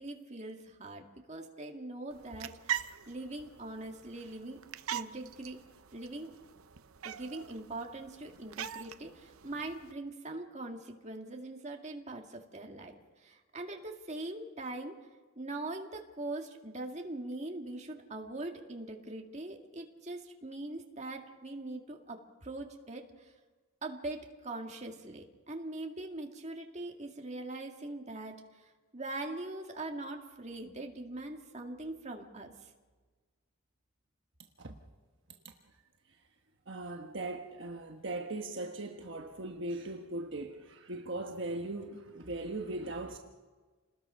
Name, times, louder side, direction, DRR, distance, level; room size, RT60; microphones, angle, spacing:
voice 1, 0.0-4.6 4.9-5.6 5.9-6.4 7.0-15.0 15.4-23.3 23.8-32.7, right 2 dB, 30° right, 2.1 m, -42 dB
cat chirp, 2.1-9.9, right 9 dB, 75° right, 0.7 m, -43 dB
voice 2, 36.7-43.2, right 2 dB, 55° right, 1.3 m, -39 dB
28.5 x 20.0 x 5.7 m
head